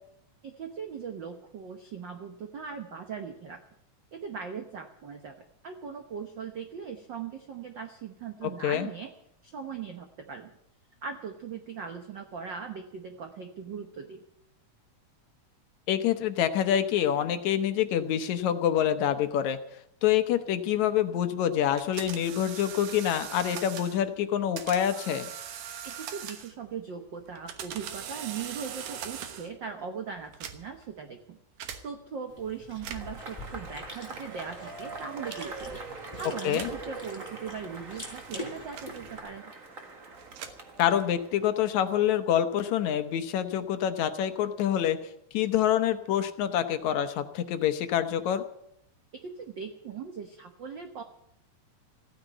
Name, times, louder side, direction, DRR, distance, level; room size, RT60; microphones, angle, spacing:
voice 1, 0.4-3.6 4.1-5.3 5.6-9.1 9.4-10.5 11.0-14.2 25.8-31.4 31.8-35.8 36.2-39.5 49.2-51.0, right 6 dB, 70° right, 5 dB, 1.1 m, -39 dB
voice 2, 8.4-8.9 15.9-19.6 20.0-25.3 36.4-36.7 40.8-45.0 45.3-48.4, left 10 dB, 70° left, 9 dB, 2.0 m, -26 dB
sound 1, 21.8-24.0 24.6-26.7 27.3-29.6 30.3-30.9 31.6-31.8 32.7-33.2 34.1-34.5 35.3-35.7 36.5-36.8 37.6-39.4 40.1-41.2, right 9 dB, 85° right, 2.8 m, -41 dB
Chewing mastication, 32.3-39.2, left 1 dB, 10° left, 5.0 m, -45 dB
Cheering / Applause / Crowd, 32.9-41.6, right 3 dB, 35° right, 1.4 m, -43 dB
15.0 x 9.3 x 9.0 m, 0.77 s
omnidirectional pair, 3.6 m